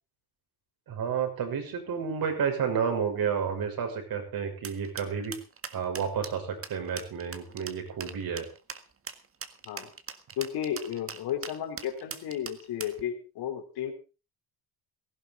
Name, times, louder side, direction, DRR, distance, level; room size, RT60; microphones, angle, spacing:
voice 1, 0.9-5.3 5.7-8.5, right 7 dB, 65° right, 4 dB, 6.1 m, -31 dB
sound 1, 4.6-13.0, right 6 dB, 35° right, 1.6 m, -41 dB
voice 2, 10.4-13.9, left 10 dB, 85° left, 6 dB, 3.8 m, -33 dB
17.5 x 15.0 x 3.9 m, 0.32 s
cardioid pair, 125°, 38 cm